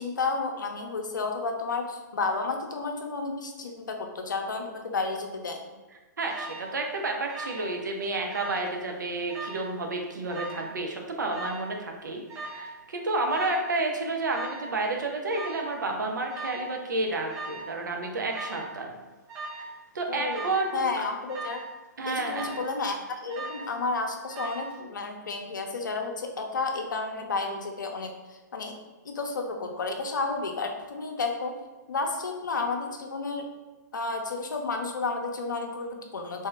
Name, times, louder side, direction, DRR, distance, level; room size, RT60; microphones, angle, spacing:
voice 1, 0.0-5.7 20.1-21.6 22.0-28.1 28.5-28.7 29.0-31.5 31.9-33.5 33.9-36.5, left 3 dB, 75° left, 3 dB, 0.6 m, -31 dB
voice 2, 6.2-19.0 19.5-19.6 19.9-20.9 22.0-22.7, right 2 dB, 70° right, 2 dB, 0.7 m, -30 dB
Alarm, 6.3-6.7 7.3-7.8 8.0-8.7 9.3-9.7 10.3-10.7 11.3-11.7 12.3-12.7 13.3-13.7 14.3-14.7 15.3-15.7 16.3-16.7 17.3-17.7 18.3-18.7 19.3-19.7 20.3-20.7 21.3-21.7 22.3-22.8 23.3-23.8 24.3-24.8, right 2 dB, 25° right, 0.5 m, -39 dB
3.4 x 2.7 x 3.3 m, 1.2 s
figure-of-eight pair, 125°, 10 cm